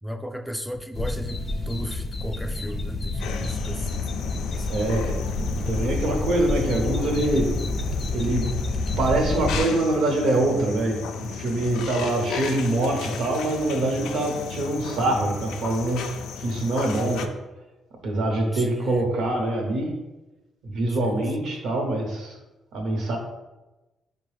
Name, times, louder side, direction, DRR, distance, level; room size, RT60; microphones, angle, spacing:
voice 1, 0.0-1.4 1.7-4.7 18.5-19.0 21.1-21.2, equal, ahead, 6 dB, 0.3 m, -35 dB
sound 1, 0.9-9.6, left 2 dB, 45° left, 0.6 m, -29 dB
sound 2, 3.2-17.3, left 5 dB, 85° left, 0.3 m, -35 dB
voice 2, 4.7-5.2 5.5-7.6 8.1-8.5 9.0-16.1 16.4-17.3 18.0-20.0 20.6-22.4 22.7-23.2, right 1 dB, 70° right, 2 dB, 0.8 m, -24 dB
4.8 x 2.2 x 3.2 m, 1.1 s
cardioid pair, 90°, 0 cm